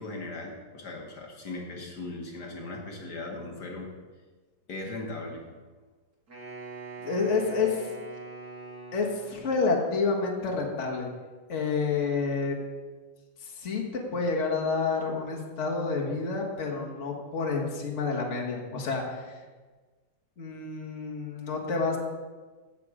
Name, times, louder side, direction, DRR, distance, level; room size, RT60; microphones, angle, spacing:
voice 1, 0.0-3.9 4.7-5.4, left 2 dB, 60° left, 0 dB, 1.9 m, -38 dB
Wind instrument woodwind instrument, 6.3-9.8, right 4 dB, 55° right, 2.7 m, -43 dB
voice 2, 7.0-7.9 8.9-11.1 11.5-12.6 13.4-19.4 20.4-22.0, left 4 dB, 40° left, 0 dB, 1.7 m, -29 dB
16.5 x 5.9 x 4.9 m, 1.4 s
omnidirectional pair, 2.0 m